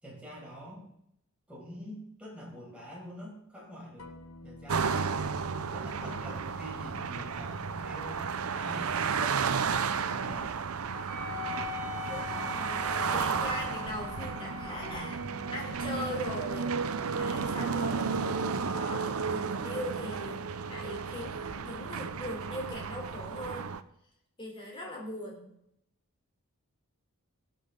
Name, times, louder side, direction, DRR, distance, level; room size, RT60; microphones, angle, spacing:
voice 1, 0.0-0.8 1.5-4.1 4.4-5.4 5.7-10.5, equal, 5° right, -5 dB, 5.8 m, -46 dB
sound 1, 4.0-8.6 12.1-16.4 20.1-22.7, left 1 dB, 75° left, 1.1 m, -50 dB
sound 2, 4.7-23.8, right 5 dB, 80° right, 0.7 m, -33 dB
Wind instrument woodwind instrument, 10.9-19.9, left 7 dB, 40° right, 2.4 m, -44 dB
voice 2, 12.1-15.2 15.5-18.2 18.7-23.7 24.4-25.5, left 1 dB, 25° left, -1 dB, 3.5 m, -40 dB
17.5 x 8.4 x 3.8 m, 0.76 s
head